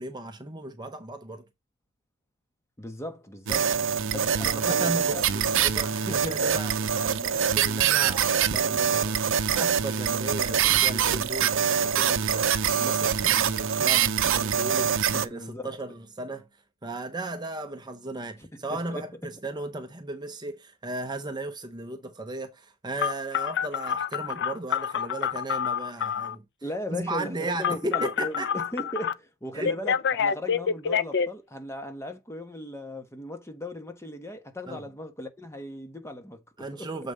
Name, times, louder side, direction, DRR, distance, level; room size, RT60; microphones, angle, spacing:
voice 1, 0.0-1.5 3.5-3.7 4.5-16.5 16.8-26.4 26.9-28.5 29.5-29.7 34.7-34.8 36.6-37.1, right 2 dB, 20° right, 0.7 m, -36 dB
voice 2, 2.8-3.7 4.0-5.2 5.9-6.9 15.1-15.7 18.7-19.0 26.6-36.4 36.7-36.9, left 1 dB, 15° left, 1.3 m, -37 dB
sound 1, 3.5-15.3, right 8 dB, 65° right, 0.7 m, -24 dB
Telephone, 23.0-26.3 27.6-29.1 29.6-31.3, left 7 dB, 55° left, 0.6 m, -27 dB
7.2 x 5.2 x 3.9 m
head